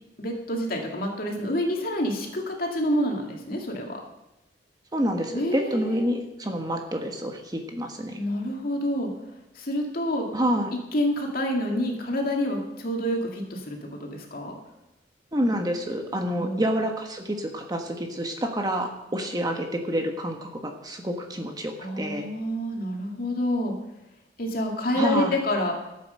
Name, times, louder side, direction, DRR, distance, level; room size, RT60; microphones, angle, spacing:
voice 1, 0.2-4.0 5.3-6.1 8.2-9.1 9.6-10.3 10.9-14.5 16.3-16.6 21.8-23.7 24.4-25.8, left 1 dB, 50° left, 1 dB, 2.4 m, -28 dB
voice 2, 4.9-8.2 10.3-10.7 15.3-22.3 25.0-25.4, equal, 20° right, 4 dB, 1.2 m, -28 dB
13.0 x 8.2 x 6.6 m, 0.95 s
head